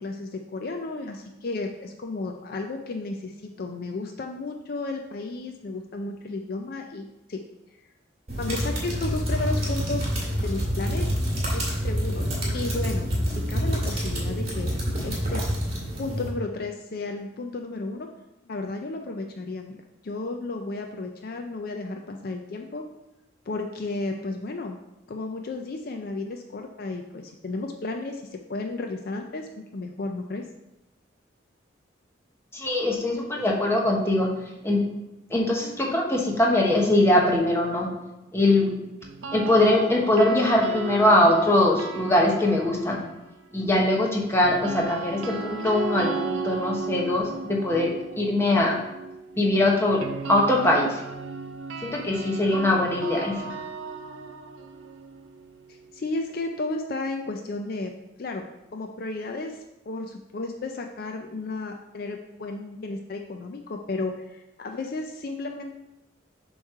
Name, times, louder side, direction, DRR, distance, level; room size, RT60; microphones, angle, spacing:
voice 1, 0.0-7.4 8.4-10.1 10.4-11.1 11.5-12.2 12.5-14.7 15.0-15.4 16.0-18.1 18.5-22.8 23.5-24.8 25.1-30.5 55.7-58.5 58.7-59.6 59.9-65.8, left 3 dB, 50° left, 4 dB, 0.4 m, -33 dB
sound 1, 8.3-16.3, equal, 35° right, 1.9 m, -27 dB
voice 2, 32.5-34.3 34.6-34.9 35.3-37.9 38.3-38.8 39.3-43.0 43.5-48.8 49.4-50.0 50.3-51.0 51.8-53.4, left 1 dB, 15° left, -2 dB, 1.0 m, -22 dB
sound 2, 39.0-43.2 44.4-56.3, right 4 dB, 90° right, 0.6 m, -35 dB
7.1 x 3.1 x 5.4 m, 0.93 s
head